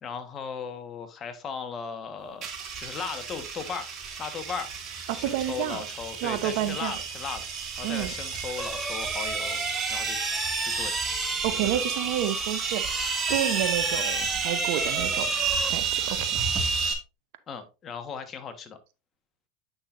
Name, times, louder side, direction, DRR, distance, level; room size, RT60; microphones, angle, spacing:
voice 1, 0.0-2.5 2.8-3.9 4.2-4.7 5.2-7.5 7.8-9.6 9.9-10.2 10.6-10.9 11.6-12.0 17.5-18.8, left 6 dB, 35° left, 1.3 m, -37 dB
sound 1, 2.4-16.9, right 5 dB, 40° right, 1.9 m, -31 dB
voice 2, 5.1-5.8 6.2-7.0 7.8-8.1 11.4-15.3 15.7-16.4, right 12 dB, 65° right, 0.8 m, -30 dB
sound 2, 8.6-15.7, right 2 dB, 10° right, 0.5 m, -33 dB
8.4 x 6.0 x 2.6 m
hypercardioid pair, 100°, 0 cm